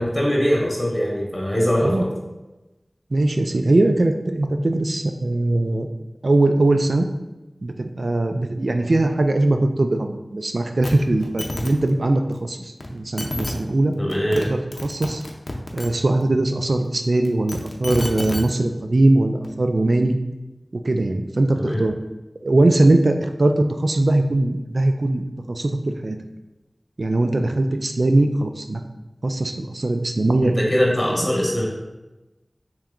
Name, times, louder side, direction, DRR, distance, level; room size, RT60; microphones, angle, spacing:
voice 1, 0.0-2.1 14.0-14.4 21.5-21.8 30.4-31.7, equal, 25° left, -2 dB, 0.9 m, -21 dB
voice 2, 3.1-5.9 6.2-7.1 7.6-13.9 14.3-15.2 15.7-20.2 20.7-21.9 22.4-26.2 27.0-28.8 29.2-30.6 31.1-31.3, right 2 dB, 80° right, 6 dB, 0.3 m, -20 dB
sound 1, 10.8-10.9 11.2-11.7 12.8-12.9 13.2-13.5 14.1-14.5 14.7-15.9 17.2-18.4 19.4-19.5, left 1 dB, 65° left, 0.5 m, -29 dB
3.3 x 3.0 x 3.7 m, 1.1 s
wide cardioid pair, 55°, 0 cm